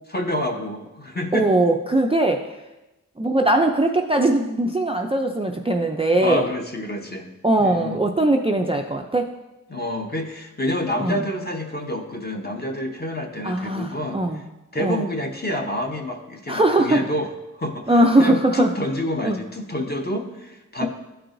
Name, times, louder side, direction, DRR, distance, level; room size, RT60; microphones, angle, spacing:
voice 1, 0.1-1.5 6.2-7.3 7.6-8.0 9.7-14.4 14.7-20.9, left 1 dB, 30° left, 2 dB, 0.9 m, -28 dB
voice 2, 1.3-2.4 3.2-6.4 7.4-9.3 11.0-11.2 13.4-14.4 14.8-15.0 16.5-17.0 17.9-18.7 19.2-19.4 20.8-20.9, right 1 dB, 15° right, 3 dB, 0.4 m, -20 dB
12.5 x 4.6 x 2.6 m, 1.0 s
wide cardioid pair, 75°, 33 cm